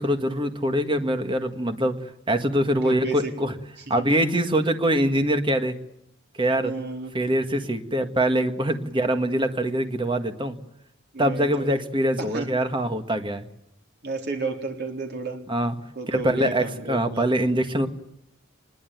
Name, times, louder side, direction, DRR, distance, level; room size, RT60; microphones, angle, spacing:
voice 1, 0.0-3.5 3.9-5.8 6.4-6.7 7.1-10.6 11.2-13.5 15.5-15.8 16.1-17.9, right 1 dB, 25° right, 7 dB, 1.7 m, -24 dB
voice 2, 2.8-3.3 3.9-4.1 6.6-7.1 11.1-11.7 12.3-12.5 14.0-15.4 16.0-17.3, right 3 dB, 55° right, 3 dB, 3.9 m, -32 dB
23.0 x 21.0 x 9.3 m, 0.78 s
head